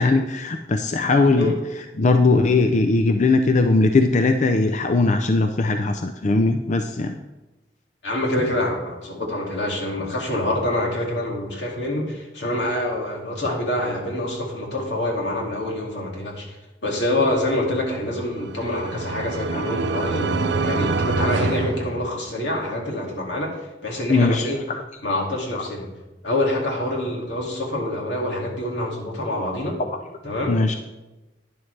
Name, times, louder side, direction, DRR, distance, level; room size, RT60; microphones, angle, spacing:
voice 1, 0.0-1.5 2.0-7.2 18.7-18.8 19.5-19.7 24.1-24.8 29.8-30.0 30.5-30.7, left 3 dB, 40° left, 7 dB, 0.5 m, -19 dB
voice 2, 8.0-24.6 25.0-25.9 26.2-29.8 30.2-30.6, left 1 dB, 80° left, -1 dB, 2.4 m, -26 dB
sound 1, 18.1-22.6, right 3 dB, 70° right, 0.6 m, -26 dB
11.0 x 10.5 x 3.3 m, 1.0 s
head